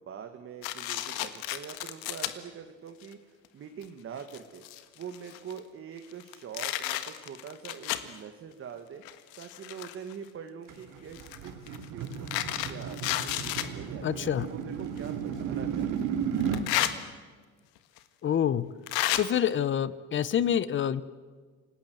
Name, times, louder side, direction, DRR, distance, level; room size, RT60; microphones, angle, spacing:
voice 1, 0.0-4.6 5.0-9.0 9.4-16.1, right 7 dB, 40° right, 6 dB, 1.8 m, -44 dB
sound 1, 0.6-2.3 3.0-3.1 3.8-3.9 4.2-5.6 6.1-8.1 9.0-10.1 11.1-13.7 15.0-15.1 16.4-16.9 18.0-18.1 18.9-19.2, left 15 dB, 85° left, 1.6 m, -32 dB
sound 2, 10.7-16.7, right 7 dB, 65° right, 2.7 m, -34 dB
voice 2, 14.0-14.5 18.2-18.7 19.2-21.0, left 9 dB, 35° left, 18 dB, 0.8 m, -27 dB
27.5 x 18.5 x 7.8 m, 1.5 s
cardioid pair, 125°, 35 cm